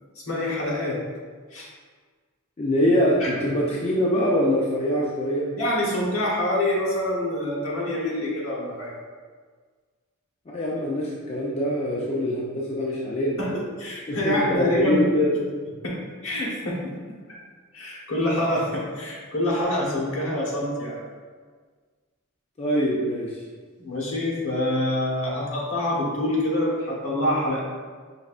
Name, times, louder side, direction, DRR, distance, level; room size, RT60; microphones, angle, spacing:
voice 1, 0.1-1.0 1.5-1.7 3.2-3.3 5.6-8.9 13.4-15.1 15.8-16.0 16.2-16.9 17.3-17.4 17.7-21.0 23.8-27.6, left 1 dB, 65° left, -3 dB, 1.1 m, -26 dB
voice 2, 2.6-5.5 10.5-13.4 14.1-15.4 22.6-23.4, equal, 30° left, -4 dB, 0.4 m, -24 dB
5.3 x 3.3 x 2.4 m, 1.5 s
head